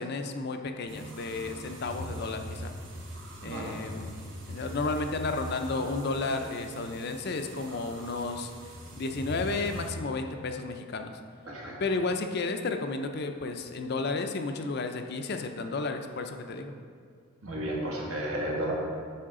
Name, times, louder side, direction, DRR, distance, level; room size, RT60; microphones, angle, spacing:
voice 1, 0.0-2.7 3.4-4.2 4.5-8.5 9.0-11.2 11.8-16.8, left 3 dB, 45° left, 6 dB, 0.5 m, -32 dB
sound 1, 0.9-9.9, equal, 55° right, 1.2 m, -42 dB
voice 2, 3.4-3.8 11.5-11.8 17.4-18.7, right 1 dB, 75° right, -3 dB, 1.7 m, -33 dB
8.6 x 5.6 x 3.7 m, 2.2 s
head